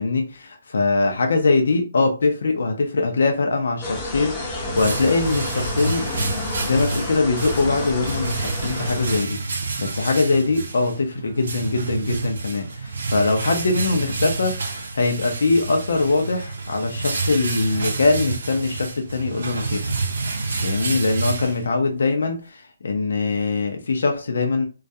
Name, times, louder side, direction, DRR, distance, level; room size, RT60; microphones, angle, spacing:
voice 1, 0.0-6.0 6.6-9.4 9.8-19.9 20.6-24.6, left 3 dB, 75° left, 0.5 m, -22 dB
sound 1, 3.8-9.2, left 2 dB, 15° left, 0.6 m, -31 dB
sound 2, 4.1-22.0, right 3 dB, 75° right, 0.6 m, -28 dB
2.3 x 2.2 x 2.6 m
hypercardioid pair, 165°, 0 cm